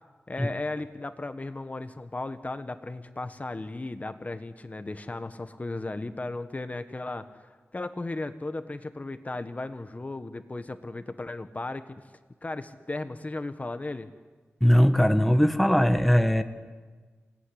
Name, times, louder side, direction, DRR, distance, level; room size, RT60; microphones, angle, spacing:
voice 1, 0.3-7.3 7.7-11.8 12.4-14.1, left 2 dB, 35° left, 10 dB, 1.2 m, -35 dB
voice 2, 14.6-16.4, equal, ahead, 9 dB, 1.3 m, -20 dB
26.0 x 18.0 x 10.0 m, 1.4 s
wide cardioid pair, 90°, 5 cm